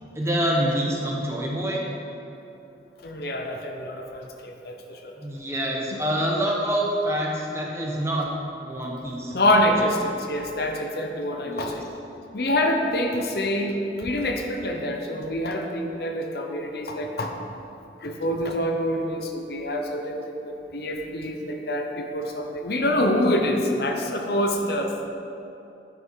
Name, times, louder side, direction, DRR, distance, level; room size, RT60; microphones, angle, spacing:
voice 1, 0.1-1.8 5.2-8.3 8.6-9.4 9.8-9.9 11.4-11.8 13.0-13.3, right 1 dB, 15° right, -2 dB, 1.0 m, -26 dB
voice 2, 3.0-5.1 5.9-6.0 9.3-11.9 12.3-17.3 18.0-25.1, left 1 dB, 60° left, 3 dB, 0.8 m, -26 dB
9.4 x 5.8 x 4.7 m, 2.8 s
head